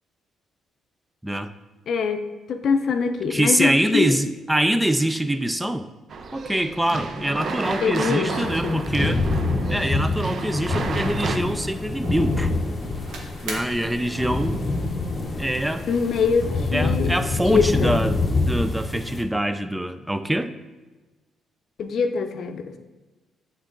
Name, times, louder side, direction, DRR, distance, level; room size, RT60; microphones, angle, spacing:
voice 1, 1.9-4.1 7.8-8.8 15.9-17.1 17.5-18.0 21.8-22.7, left 5 dB, 60° left, 8 dB, 0.5 m, -24 dB
voice 2, 3.3-5.9 6.3-9.3 9.7-12.5 13.4-14.6 15.4-15.9 16.7-20.5, right 1 dB, 5° right, 10 dB, 0.3 m, -24 dB
sound 1, 6.1-11.4, right 4 dB, 55° right, 0.6 m, -31 dB
sound 2, 8.4-19.2, left 2 dB, 30° left, 0.8 m, -26 dB
sound 3, 10.7-16.6, right 1 dB, 85° right, 1.2 m, -40 dB
7.3 x 3.9 x 3.8 m, 1.2 s
cardioid pair, 90°, 0 cm